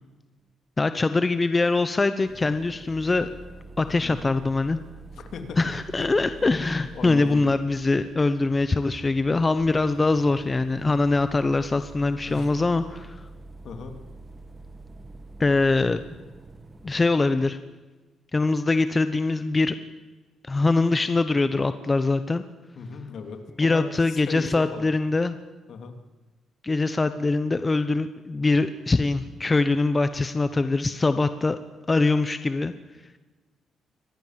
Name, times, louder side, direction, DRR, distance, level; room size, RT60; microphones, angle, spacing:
voice 1, 0.8-3.3 3.8-4.8 5.6-13.3 15.4-16.0 16.8-17.6 18.3-19.7 20.4-22.4 23.6-25.4 26.6-31.6 31.9-32.7, left 3 dB, 25° left, 11 dB, 1.0 m, -23 dB
sound 1, 2.2-17.0, right 3 dB, 20° right, 2.3 m, -46 dB
voice 2, 5.2-5.7 6.0-6.1 6.4-6.5 6.9-7.4 12.3-12.5 13.6-14.0 22.8-24.9 25.7-26.0, left 5 dB, 60° left, 6 dB, 3.1 m, -37 dB
24.5 x 19.0 x 7.6 m, 1.3 s
cardioid pair, 90°, 0 cm